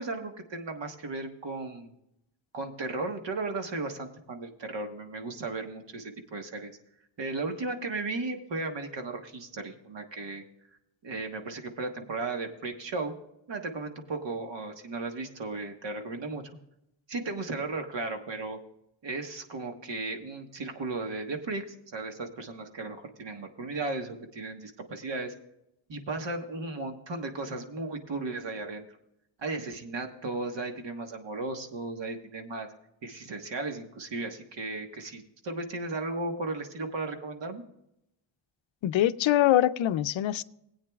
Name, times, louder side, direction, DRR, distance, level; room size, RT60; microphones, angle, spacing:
voice 1, 0.0-1.9 2.5-6.7 7.2-10.4 11.0-13.1 13.5-16.4 17.1-18.6 19.0-25.3 25.9-28.9 29.4-32.7 33.0-37.6, right 3 dB, 65° right, 5 dB, 1.4 m, -35 dB
voice 2, 38.8-40.4, left 13 dB, 70° left, 13 dB, 0.5 m, -23 dB
20.0 x 8.8 x 2.3 m, 0.81 s
wide cardioid pair, 170°, 47 cm